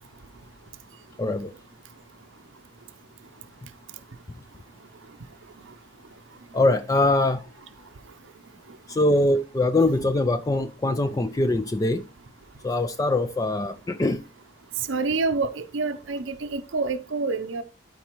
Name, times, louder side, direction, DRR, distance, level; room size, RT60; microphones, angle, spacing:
voice 1, 1.2-1.5 6.5-7.4 8.9-12.0 12.6-14.2, left 2 dB, 20° left, 0.3 m, -23 dB
voice 2, 14.9-17.6, right 3 dB, 70° right, 0.6 m, -27 dB
13.0 x 4.6 x 3.0 m
head